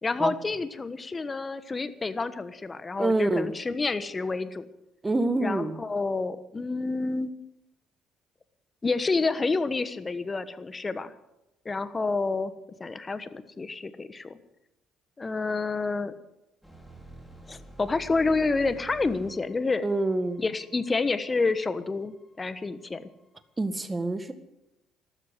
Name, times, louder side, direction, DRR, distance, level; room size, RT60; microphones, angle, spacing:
voice 1, 0.0-4.7 5.4-7.3 8.8-11.1 11.6-12.5 12.8-14.4 15.2-16.1 17.5-19.9 20.4-23.0, left 3 dB, 25° left, 13 dB, 1.3 m, -29 dB
voice 2, 3.0-3.5 5.0-5.8 19.8-20.4 23.6-24.3, right 2 dB, 20° right, 11 dB, 1.8 m, -26 dB
sound 1, 16.6-22.8 23.1-23.4, right 2 dB, ahead, 4.6 m, -49 dB
13.0 x 13.0 x 8.0 m, 0.92 s
hypercardioid pair, 55°, 0 cm